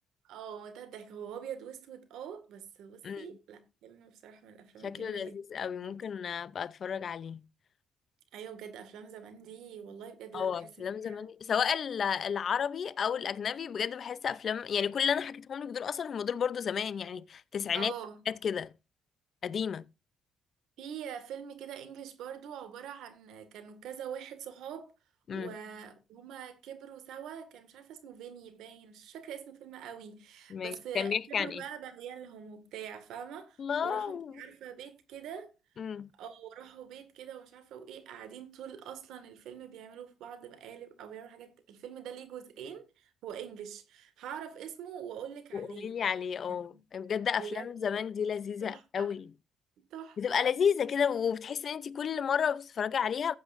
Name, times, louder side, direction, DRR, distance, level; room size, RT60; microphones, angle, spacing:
voice 1, 0.2-5.4 5.8-5.9 8.3-11.3 17.7-18.2 20.8-24.9 25.3-35.5 36.2-45.9 46.5-46.8 47.4-48.0 48.6-49.1 49.9-50.5, right 8 dB, 85° right, 1.8 m, -44 dB
voice 2, 4.8-7.4 10.3-17.9 18.3-18.7 19.4-19.8 25.3-25.5 30.5-31.6 33.6-34.3 35.8-36.1 45.5-49.3 50.2-53.3, left 7 dB, 55° left, 0.5 m, -32 dB
15.0 x 8.1 x 2.6 m
cardioid pair, 90°, 0 cm